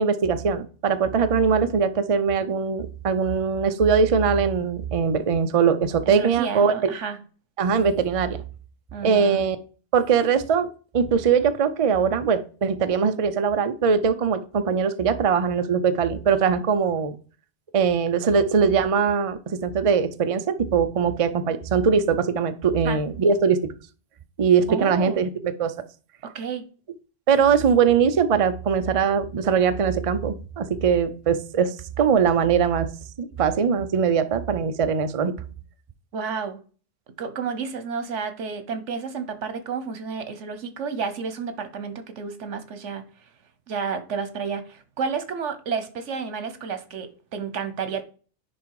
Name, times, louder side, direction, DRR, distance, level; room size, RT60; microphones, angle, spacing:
voice 1, 0.0-6.7 7.6-8.4 9.0-9.6 9.9-10.7 10.9-17.2 17.7-23.6 24.4-25.7 27.3-32.9 33.2-35.3, right 6 dB, 40° right, 0.5 m, -21 dB
voice 2, 6.1-7.2 8.9-9.5 22.8-23.0 24.7-25.2 26.2-26.6 36.1-36.6 37.2-43.0 43.7-48.0, right 5 dB, 85° right, 1.3 m, -31 dB
10.0 x 3.5 x 4.7 m
omnidirectional pair, 1.2 m